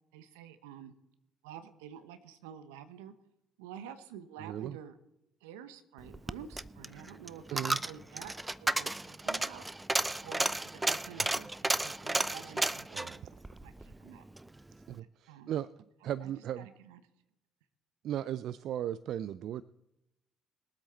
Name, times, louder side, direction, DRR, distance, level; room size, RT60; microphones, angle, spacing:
voice 1, 0.1-0.9 1.4-3.1 3.6-4.9 5.4-8.3 8.6-9.6 10.2-13.1 13.6-14.2 15.3-15.6 16.2-17.0, right 9 dB, 80° right, 11 dB, 1.0 m, -49 dB
voice 2, 4.4-4.8 7.5-7.8 11.4-11.5 12.7-13.3 14.9-15.7 16.0-16.7 18.0-19.6, right 11 dB, 65° right, 18 dB, 0.4 m, -37 dB
Coin (dropping), 6.0-14.5 14.8-14.9, right 2 dB, 15° right, 0.5 m, -33 dB
22.0 x 8.0 x 4.3 m, 0.87 s
hypercardioid pair, 50°, 0 cm